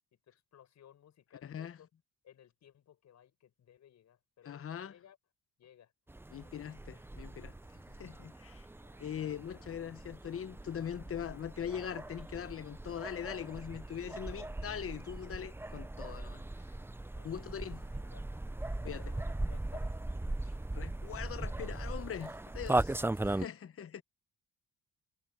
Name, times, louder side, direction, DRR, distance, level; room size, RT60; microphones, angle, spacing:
voice 1, 0.3-1.9 2.2-5.2 5.6-5.9 8.8-9.6 17.1-17.4 17.8-18.2 18.7-20.0 23.0-23.6, left 10 dB, 65° left, 7.3 m, -60 dB
voice 2, 1.4-1.8 4.4-5.0 6.3-7.5 8.0-8.7 9.0-16.4 17.2-17.8 18.8-19.1 20.7-23.0 23.3-24.0, left 8 dB, 50° left, 1.1 m, -41 dB
sound 1, 6.1-23.5, right 2 dB, 10° right, 0.7 m, -39 dB
cardioid pair, 90°, 30 cm